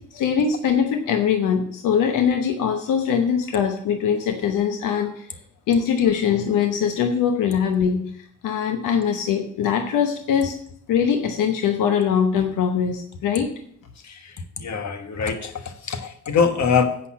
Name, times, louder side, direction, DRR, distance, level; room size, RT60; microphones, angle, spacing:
voice 1, 0.1-5.3 5.7-10.5 10.9-13.5, left 7 dB, 85° left, 5 dB, 0.9 m, -22 dB
voice 2, 14.0-17.0, left 6 dB, 60° left, 8 dB, 1.4 m, -24 dB
8.3 x 5.6 x 7.3 m, 0.65 s
supercardioid pair, 60°, 31 cm